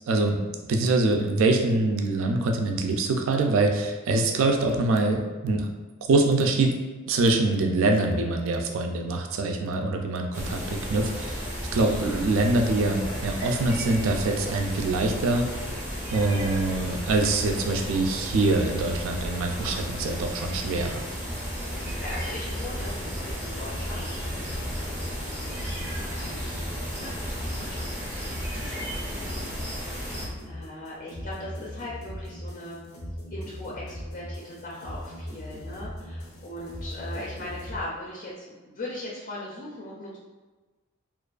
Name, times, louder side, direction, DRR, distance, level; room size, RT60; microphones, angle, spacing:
voice 1, 0.1-0.4 0.7-5.7 6.0-6.7 7.1-15.5 16.1-21.0, right 2 dB, 70° right, 3 dB, 0.3 m, -24 dB
sound 1, 10.3-30.3, equal, 10° right, 0.5 m, -34 dB
sound 2, 21.2-37.8, equal, 90° left, 0.5 m, -40 dB
voice 2, 21.7-24.1 24.5-29.5 29.7-32.9 33.3-40.2, left 1 dB, 40° left, -5 dB, 0.4 m, -40 dB
2.4 x 2.3 x 2.3 m, 1.3 s
head